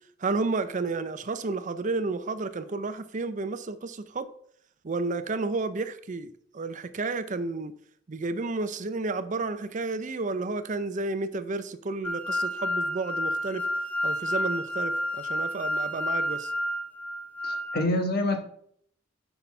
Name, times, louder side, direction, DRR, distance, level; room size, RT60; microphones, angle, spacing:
voice 1, 0.2-4.3 4.8-7.7 8.1-13.7 14.0-16.5, right 3 dB, 40° right, 12 dB, 0.5 m, -31 dB
sound 1, 12.0-17.9, left 1 dB, 10° left, 0.5 m, -30 dB
voice 2, 17.4-18.4, left 1 dB, 55° left, 5 dB, 1.4 m, -26 dB
6.3 x 5.7 x 5.4 m, 0.63 s
head